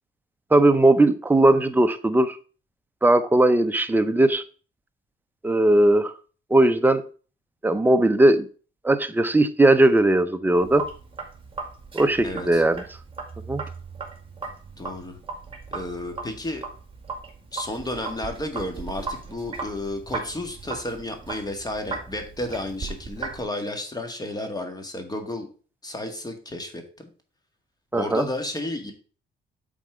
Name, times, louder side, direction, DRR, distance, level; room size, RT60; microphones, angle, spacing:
voice 1, 0.5-2.4 3.0-4.4 5.4-6.1 6.5-7.0 7.6-8.5 8.8-10.9 11.9-12.8 13.5-13.6 27.9-28.2, right 1 dB, 10° right, 0.7 m, -18 dB
Sink (filling or washing), 10.6-23.4, right 4 dB, 25° right, 2.1 m, -37 dB
voice 2, 12.2-12.6 14.8-15.2 15.7-16.6 17.5-25.5 25.8-27.1 27.9-28.9, left 1 dB, 20° left, 1.8 m, -32 dB
7.3 x 4.2 x 5.0 m
cardioid pair, 90°, 20 cm